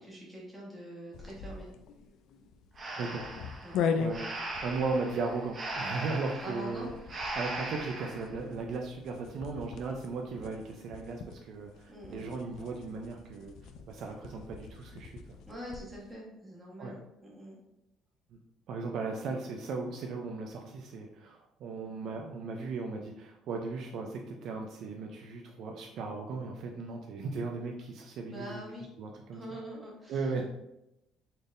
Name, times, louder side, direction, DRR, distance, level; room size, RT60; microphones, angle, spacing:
voice 1, 0.1-1.7 3.6-3.8 6.4-6.9 11.9-12.2 15.5-17.6 28.3-28.9 29.3-30.2, equal, 10° right, -4 dB, 1.2 m, -44 dB
sound 1, 1.1-16.0, left 6 dB, 65° left, 0.3 m, -40 dB
Breathing, 2.8-8.3, right 2 dB, 30° right, 0.7 m, -39 dB
voice 2, 3.0-3.3 4.0-4.3 4.6-6.9 7.3-13.6 13.9-15.2 16.8-17.0 18.7-28.6 29.0-29.4 30.1-30.4, right 4 dB, 55° right, 2 dB, 0.4 m, -37 dB
4.2 x 3.4 x 2.5 m, 0.87 s
cardioid pair, 150°, 0 cm